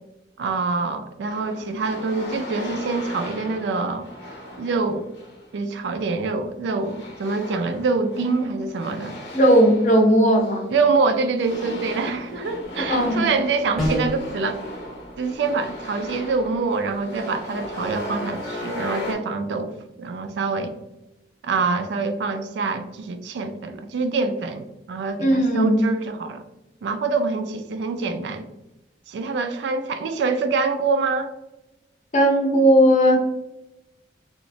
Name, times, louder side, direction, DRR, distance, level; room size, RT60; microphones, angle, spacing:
voice 1, 0.4-4.1 4.6-5.1 5.5-9.1 10.7-14.6 15.2-19.7 20.0-20.7 21.4-26.4 26.8-28.5 29.1-31.3, right 4 dB, 80° right, 8 dB, 0.3 m, -25 dB
sound 1, 1.3-5.5 6.8-11.0 11.4-19.1, left 1 dB, 80° left, 0.6 m, -36 dB
voice 2, 9.3-10.7 12.9-13.3 25.2-25.8 32.1-33.2, equal, 40° left, 1 dB, 0.5 m, -17 dB
sound 2, 13.8-14.3, left 1 dB, ahead, 0.7 m, -25 dB
2.9 x 2.0 x 2.5 m, 0.94 s
head